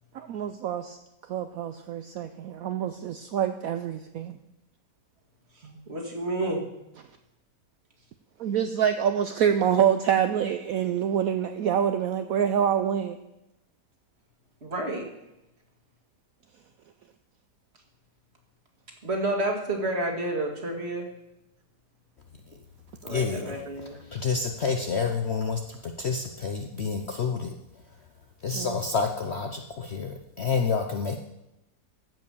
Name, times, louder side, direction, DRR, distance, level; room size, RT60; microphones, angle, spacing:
voice 1, 0.1-1.0 1.3-4.4 8.4-13.2 28.5-28.8, right 9 dB, 70° right, 8 dB, 0.9 m, -26 dB
voice 2, 5.5-6.6 14.6-15.0 19.0-21.1 23.0-24.0, right 1 dB, 40° right, 1 dB, 2.0 m, -30 dB
voice 3, 23.1-23.6 24.1-27.5 28.4-31.2, left 5 dB, 55° left, 4 dB, 0.7 m, -29 dB
15.0 x 5.4 x 6.9 m, 0.91 s
omnidirectional pair, 1.8 m